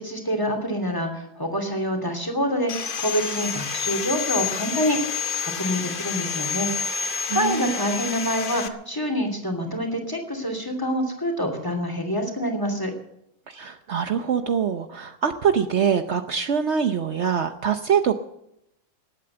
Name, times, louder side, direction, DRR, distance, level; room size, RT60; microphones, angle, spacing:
voice 1, 0.0-5.0 5.4-12.9, equal, 10° left, 4 dB, 2.6 m, -26 dB
Sawing, 2.7-8.7, left 6 dB, 75° left, 0.4 m, -29 dB
voice 2, 7.3-7.7 13.5-18.1, right 7 dB, 80° right, 9 dB, 0.6 m, -24 dB
19.5 x 8.6 x 7.8 m, 0.79 s
omnidirectional pair, 2.2 m